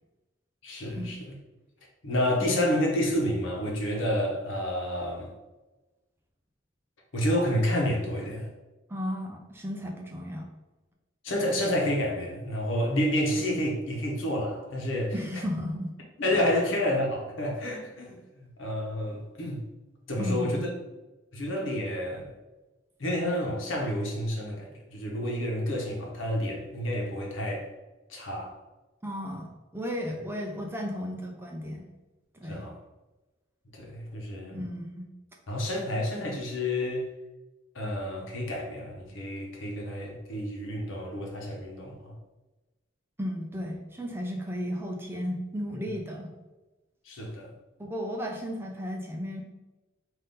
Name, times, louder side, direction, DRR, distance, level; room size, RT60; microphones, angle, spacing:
voice 1, 0.6-1.4 2.0-5.3 7.1-8.5 11.2-15.1 16.2-19.6 20.1-20.7 21.3-22.3 23.0-27.7 28.1-28.5 32.5-32.7 33.7-34.6 35.5-37.1 37.7-42.2 47.1-47.5, left 1 dB, 80° left, -1 dB, 1.0 m, -29 dB
voice 2, 8.9-10.5 15.1-15.9 20.2-20.6 29.0-31.8 32.3-32.7 34.5-35.1 43.2-46.3 47.8-49.4, equal, 10° right, 0 dB, 0.5 m, -34 dB
3.9 x 2.7 x 3.7 m, 1.1 s
head